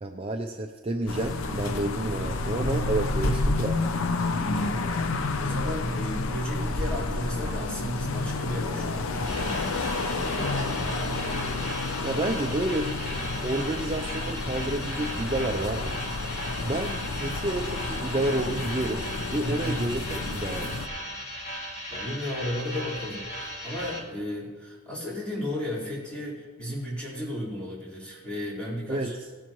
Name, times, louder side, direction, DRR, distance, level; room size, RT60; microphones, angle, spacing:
voice 1, 0.0-3.7 12.0-12.9 13.4-15.9 16.6-19.0 19.3-20.8 28.9-29.1, right 1 dB, 30° right, 3 dB, 0.5 m, -30 dB
sound 1, 1.1-20.9, left 3 dB, 75° left, 0.7 m, -30 dB
voice 2, 3.2-3.6 4.4-10.9 19.4-19.8 21.9-29.1, left 1 dB, 5° left, -8 dB, 4.3 m, -34 dB
sound 2, 9.2-24.0, equal, 35° left, 2.1 m, -37 dB
17.5 x 11.5 x 3.1 m, 1.5 s
head